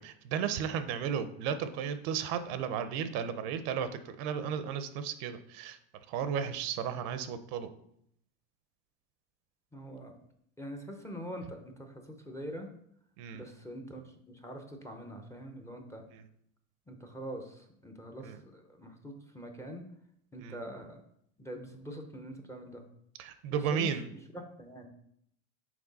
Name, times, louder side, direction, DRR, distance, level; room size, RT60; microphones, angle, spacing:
voice 1, 0.0-5.8 6.1-7.7 13.2-13.4 18.2-18.4 20.4-20.6 23.2-24.0, right 7 dB, 60° right, 11 dB, 0.7 m, -34 dB
voice 2, 9.7-10.2 10.6-12.7 13.3-16.0 16.9-19.9 20.3-21.0 21.4-22.8 23.5-24.9, equal, 5° left, 4 dB, 0.6 m, -44 dB
6.1 x 4.6 x 4.0 m, 0.71 s
supercardioid pair, 130°, 41 cm